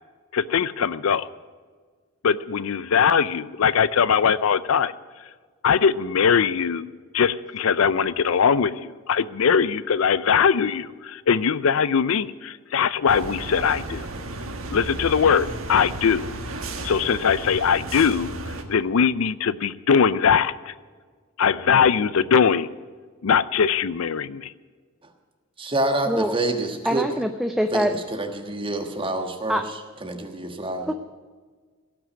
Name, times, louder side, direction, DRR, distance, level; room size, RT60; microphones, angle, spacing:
voice 1, 0.3-1.3 2.2-4.9 5.6-14.1 14.7-16.3 16.8-20.7 21.4-22.7 23.2-24.5, left 6 dB, 75° left, 16 dB, 0.5 m, -21 dB
sound 1, 13.1-18.6, right 2 dB, 75° right, 1.4 m, -33 dB
voice 2, 25.6-27.2 27.7-30.9, right 2 dB, 25° right, 4 dB, 1.4 m, -27 dB
voice 3, 26.9-27.9 29.5-29.6 30.9-31.0, equal, ahead, 7 dB, 0.4 m, -24 dB
17.5 x 6.1 x 9.5 m, 1.5 s
head